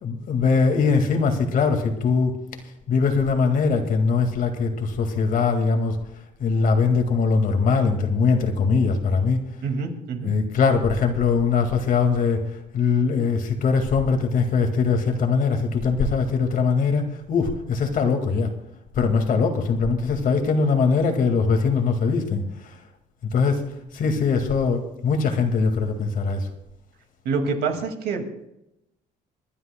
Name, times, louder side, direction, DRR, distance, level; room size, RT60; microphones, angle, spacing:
voice 1, 0.0-2.4 2.9-6.0 6.4-9.4 10.2-18.5 18.9-22.8 23.3-23.6 23.9-26.5, left 5 dB, 55° left, 5 dB, 2.0 m, -21 dB
voice 2, 9.6-10.3 27.3-28.3, right 4 dB, 75° right, 4 dB, 2.2 m, -26 dB
29.5 x 11.0 x 2.2 m, 0.88 s
cardioid pair, 110°, 17 cm